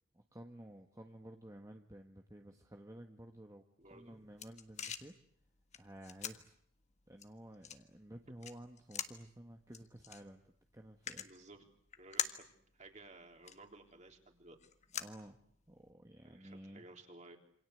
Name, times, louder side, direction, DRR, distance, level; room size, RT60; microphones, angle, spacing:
voice 1, 0.1-5.1 5.7-6.5 7.1-11.3 14.9-15.4 15.7-16.8, right 1 dB, 15° right, 3 dB, 1.5 m, -53 dB
sound 1, 3.8-15.9, left 8 dB, 35° left, 1.7 m, -47 dB
voice 2, 3.8-4.2 11.2-11.6 12.0-14.6 16.2-17.4, right 2 dB, 35° right, 4 dB, 3.8 m, -56 dB
28.0 x 26.0 x 8.0 m, 0.65 s
head